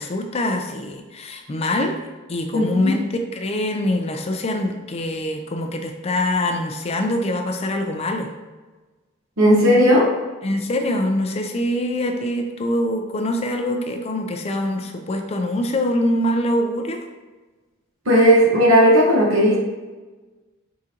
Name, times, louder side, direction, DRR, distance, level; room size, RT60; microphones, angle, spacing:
voice 1, 0.0-1.9 2.3-8.3 10.4-17.0, left 1 dB, 30° left, 4 dB, 0.4 m, -24 dB
voice 2, 2.5-2.9 9.4-10.1 18.1-19.6, equal, 75° right, -3 dB, 1.2 m, -15 dB
4.8 x 3.7 x 2.8 m, 1.2 s
head